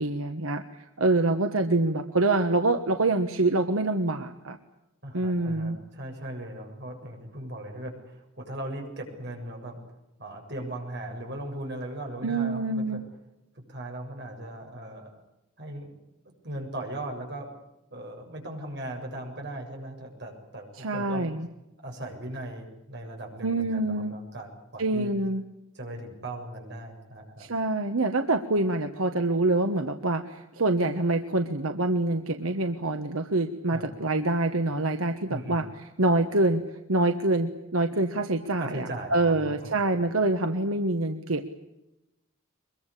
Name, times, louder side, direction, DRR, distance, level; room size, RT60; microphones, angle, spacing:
voice 1, 0.0-4.6 5.1-5.8 12.2-13.0 20.8-21.5 23.4-24.2 24.8-25.4 27.4-35.6 36.0-36.6 36.9-41.5, right 2 dB, 85° right, 7 dB, 1.4 m, -26 dB
voice 2, 5.0-9.8 10.2-13.0 13.7-15.2 15.6-15.9 16.2-17.5 17.9-21.3 21.8-25.1 25.7-27.5 33.7-33.9 35.3-35.6 38.6-39.9, right 1 dB, 50° right, 2 dB, 7.4 m, -38 dB
24.0 x 22.5 x 8.4 m, 0.93 s
head